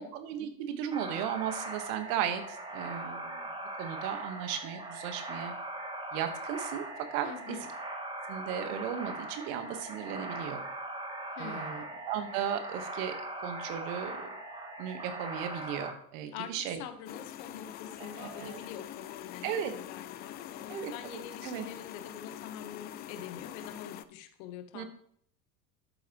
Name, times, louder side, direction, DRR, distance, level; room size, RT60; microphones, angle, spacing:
voice 1, 0.0-3.4 3.8-5.5 6.1-7.6 8.3-10.6 11.4-13.2 13.4-14.3 14.8-16.8 18.0-18.6 19.4-19.7 20.7-21.7 24.7-24.8, right 9 dB, 55° right, 8 dB, 1.4 m, -36 dB
sound 1, 0.9-15.9, right 2 dB, 10° right, 1.7 m, -40 dB
voice 2, 7.2-7.7 11.3-12.0 16.3-24.8, left 8 dB, 55° left, 9 dB, 1.3 m, -45 dB
sound 2, 17.1-24.1, left 12 dB, 25° left, 0.3 m, -44 dB
11.0 x 8.1 x 3.0 m, 0.65 s
figure-of-eight pair, 75°, 46 cm